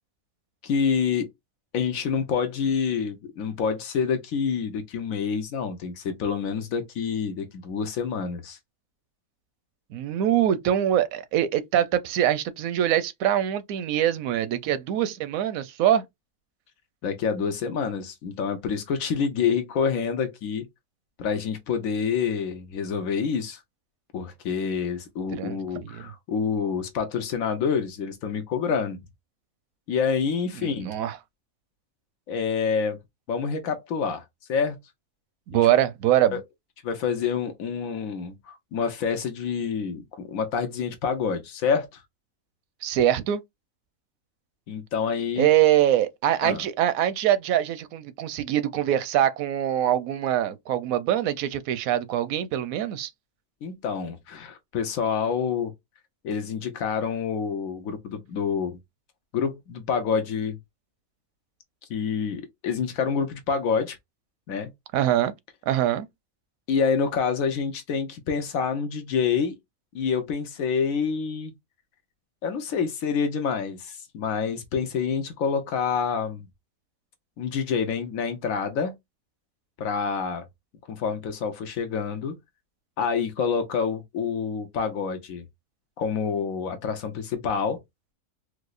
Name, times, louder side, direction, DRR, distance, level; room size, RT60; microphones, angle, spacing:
voice 1, 0.6-1.3 1.7-8.6 17.0-20.7 21.2-23.6 24.1-29.0 29.9-30.9 32.3-33.0 33.3-34.2 34.5-34.8 35.5-35.6 36.3-36.4 36.8-42.0 44.7-45.5 46.4-46.6 53.6-55.7 56.2-58.8 59.3-60.6 61.9-64.0 64.5-64.7 66.7-69.6 69.9-71.5 72.4-76.4 77.4-78.9 79.8-80.5 80.9-82.4 83.0-85.4 86.0-87.8, left 6 dB, 90° left, 1.2 m, -27 dB
voice 2, 9.9-16.0 25.3-26.1 30.6-31.2 35.5-36.4 42.8-43.4 45.4-53.1 64.9-65.3 65.7-66.1, right 11 dB, 85° right, 1.0 m, -23 dB
4.7 x 2.1 x 2.4 m
omnidirectional pair, 1.4 m